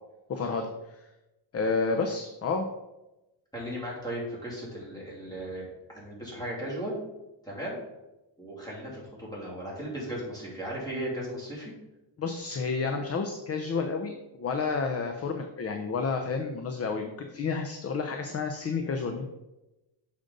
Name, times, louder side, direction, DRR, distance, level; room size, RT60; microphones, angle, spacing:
voice 1, 0.3-1.0 1.5-2.7 12.2-19.2, left 4 dB, 35° left, 5 dB, 0.5 m, -30 dB
voice 2, 3.5-7.0 7.4-7.8 8.4-11.7, right 1 dB, 10° left, -6 dB, 2.5 m, -36 dB
6.6 x 5.1 x 3.8 m, 0.99 s
cardioid pair, 140°, 46 cm